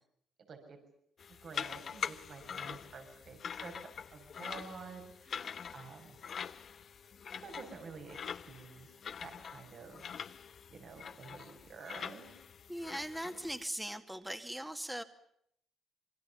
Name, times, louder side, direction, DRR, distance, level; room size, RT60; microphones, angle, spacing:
sound 1, 1.2-13.6, left 7 dB, 55° left, 1.0 m, -44 dB
voice 1, 1.4-6.2 7.3-10.3 10.7-12.3, right 5 dB, 55° right, 5 dB, 6.3 m, -50 dB
voice 2, 12.7-15.0, right 1 dB, 5° right, 7 dB, 2.2 m, -40 dB
27.0 x 24.0 x 7.2 m, 0.72 s
cardioid pair, 90°, 0 cm